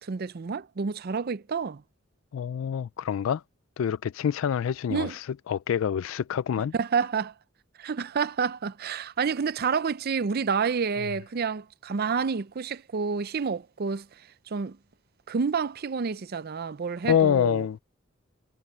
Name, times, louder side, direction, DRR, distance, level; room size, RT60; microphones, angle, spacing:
voice 1, 0.0-1.8 4.9-5.2 6.7-7.3 7.8-14.1 14.5-14.8 15.3-17.8, right 5 dB, 50° right, 0.5 m, -29 dB
voice 2, 2.3-3.4 3.8-6.7 17.1-17.8, left 8 dB, 75° left, 0.3 m, -26 dB
head